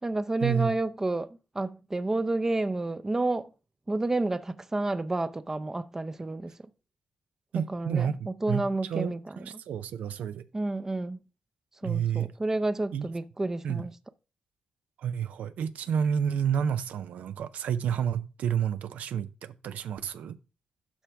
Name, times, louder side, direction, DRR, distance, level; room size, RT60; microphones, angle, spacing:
voice 1, 0.0-3.5 3.9-6.5 7.7-9.4 10.5-11.2 11.8-13.9, right 2 dB, 20° right, 0.5 m, -30 dB
voice 2, 7.5-8.6 8.9-10.4 11.8-12.3 12.9-13.1 13.6-13.9 15.0-20.4, right 8 dB, 85° right, 0.5 m, -30 dB
11.5 x 6.0 x 3.4 m
cardioid pair, 100°, 2 cm